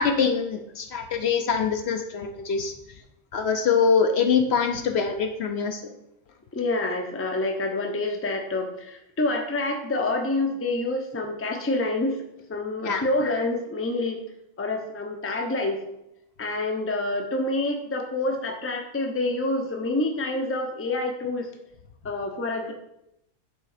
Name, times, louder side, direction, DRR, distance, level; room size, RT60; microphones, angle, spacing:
voice 1, 0.0-2.7 3.3-5.9 12.8-13.0, left 6 dB, 65° left, 5 dB, 0.9 m, -24 dB
voice 2, 6.5-12.2 12.5-14.2 14.6-15.8 16.4-21.5 22.0-22.7, left 2 dB, 15° left, 3 dB, 0.6 m, -27 dB
7.5 x 3.6 x 4.9 m, 0.82 s
omnidirectional pair, 1.3 m